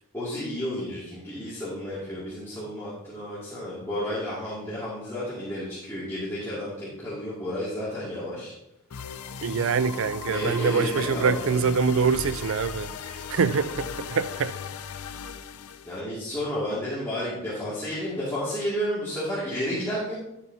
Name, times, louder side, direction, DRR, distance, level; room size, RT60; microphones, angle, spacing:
voice 1, 0.1-8.5 10.3-11.5 15.9-20.2, equal, 10° left, 2.3 m, -31 dB
sound 1, 8.9-16.0, left 6 dB, 80° left, 0.5 m, -37 dB
voice 2, 9.4-14.5, right 5 dB, 60° right, 0.4 m, -25 dB
11.5 x 7.5 x 2.8 m
head